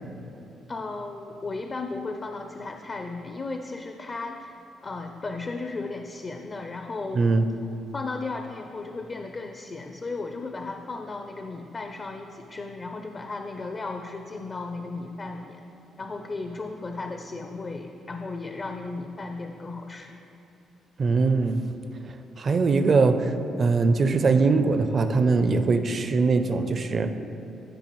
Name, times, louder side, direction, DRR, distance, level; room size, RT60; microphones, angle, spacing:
voice 1, 0.7-4.5 4.8-7.3 7.9-15.6 16.0-20.1, left 3 dB, 35° left, 4 dB, 0.5 m, -35 dB
voice 2, 7.1-7.5 21.0-21.6 22.0-27.1, right 4 dB, 45° right, 9 dB, 0.5 m, -22 dB
14.0 x 5.1 x 3.1 m, 3.0 s
cardioid pair, 90°, 0 cm